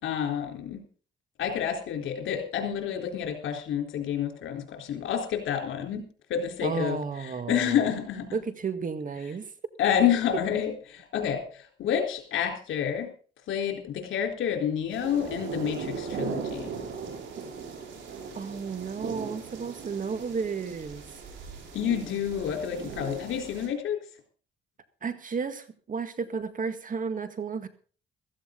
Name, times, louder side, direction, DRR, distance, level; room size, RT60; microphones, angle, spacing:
voice 1, 0.0-0.8 1.4-6.0 6.3-7.0 7.5-8.3 9.8-13.1 13.5-16.7 21.7-24.0, left 9 dB, 75° left, 4 dB, 4.0 m, -29 dB
voice 2, 6.6-7.9 8.3-9.5 18.3-21.2 25.0-27.7, right 5 dB, 40° right, 11 dB, 1.8 m, -33 dB
sound 1, 14.9-23.7, right 5 dB, 75° right, 4.8 m, -38 dB
15.5 x 14.0 x 3.9 m, 0.40 s
cardioid pair, 90°, 20 cm